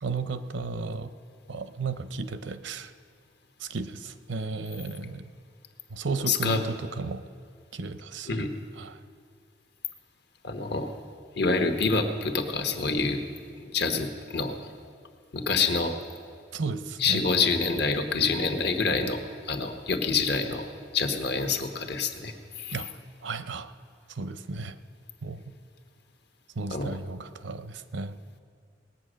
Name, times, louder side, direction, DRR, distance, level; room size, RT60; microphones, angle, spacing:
voice 1, 0.0-1.1 1.5-2.9 3.6-5.3 5.9-7.2 7.7-8.5 8.8-9.0 16.5-17.3 22.7-22.9 23.2-23.7 24.1-24.8 25.2-25.4 26.6-28.2, right 4 dB, 80° right, 11 dB, 0.7 m, -34 dB
voice 2, 6.3-6.6 8.3-8.5 10.4-10.9 11.4-13.2 13.5-14.6 15.3-15.9 17.0-20.7 20.9-22.7 26.7-27.0, left 4 dB, 65° left, 5 dB, 1.2 m, -27 dB
18.5 x 9.0 x 6.3 m, 2.2 s
head